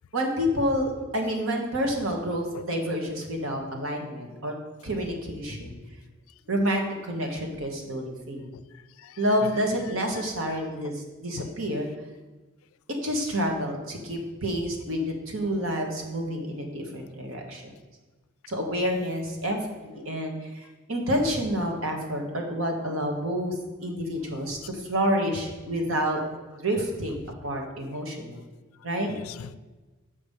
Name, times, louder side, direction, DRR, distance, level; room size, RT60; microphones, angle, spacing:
voice 1, 0.1-4.5 4.8-5.8 6.5-8.5 9.2-11.9 13.0-17.7 18.5-26.2 26.6-28.4 28.8-29.1, equal, 80° right, 2 dB, 1.4 m, -29 dB
voice 2, 8.5-9.6 10.4-10.5 11.4-11.5 20.0-20.1 29.1-29.6, left 7 dB, 85° left, 15 dB, 0.4 m, -42 dB
6.8 x 5.2 x 5.4 m, 1.2 s
head